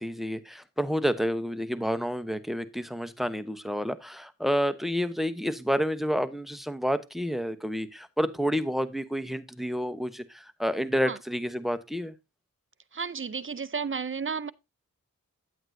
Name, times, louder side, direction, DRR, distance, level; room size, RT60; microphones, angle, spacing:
voice 1, 0.0-12.1, equal, ahead, 0.9 m, -29 dB
voice 2, 12.9-14.5, right 5 dB, 35° right, 0.6 m, -32 dB
9.3 x 8.7 x 2.7 m
cardioid pair, 45°, 34 cm